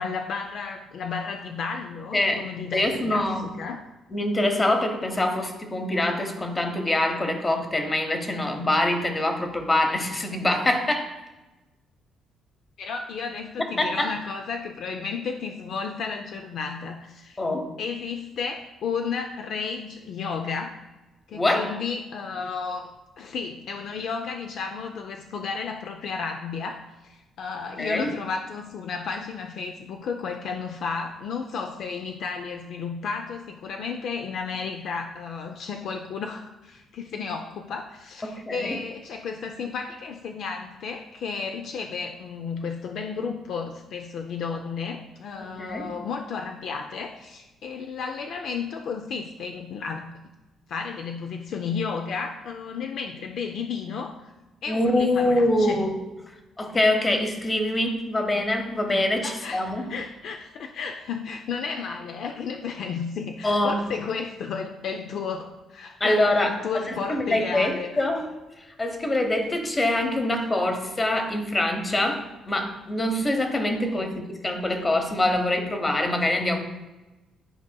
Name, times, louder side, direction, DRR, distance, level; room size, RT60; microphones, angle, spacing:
voice 1, 0.0-3.8 12.8-17.4 17.8-20.8 21.3-22.9 23.2-50.1 50.7-54.3 54.6-55.8 59.2-67.9 73.8-74.2, left 5 dB, 65° left, 4 dB, 0.4 m, -33 dB
voice 2, 2.1-2.5 2.7-3.5 4.1-11.2 13.8-14.1 17.4-17.7 21.3-21.7 27.8-28.1 38.2-38.8 45.4-45.9 54.7-55.9 56.6-59.9 63.4-63.8 66.0-68.3 68.8-76.6, left 1 dB, 20° left, 5 dB, 0.8 m, -24 dB
11.0 x 4.7 x 2.2 m, 1.1 s
cardioid pair, 135°, 0 cm